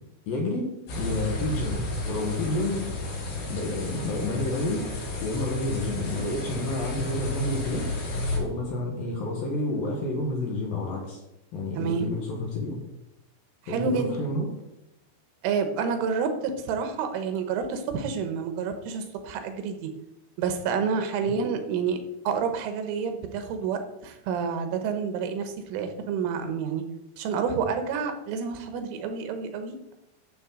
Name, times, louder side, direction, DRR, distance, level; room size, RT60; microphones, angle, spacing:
voice 1, 0.3-0.7 0.9-2.9 3.4-4.9 5.2-7.9 8.3-11.2 11.5-12.8 13.7-14.5 21.2-21.3, left 2 dB, 60° left, 0 dB, 2.6 m, -30 dB
sound 1, 0.9-8.4, left 2 dB, 85° left, 6.0 m, -32 dB
voice 2, 11.8-12.1 13.7-14.1 15.4-19.9 20.4-22.0 22.3-26.8 27.2-29.9, right 6 dB, 85° right, 7 dB, 3.6 m, -29 dB
12.5 x 6.9 x 3.9 m, 0.87 s
omnidirectional pair, 5.6 m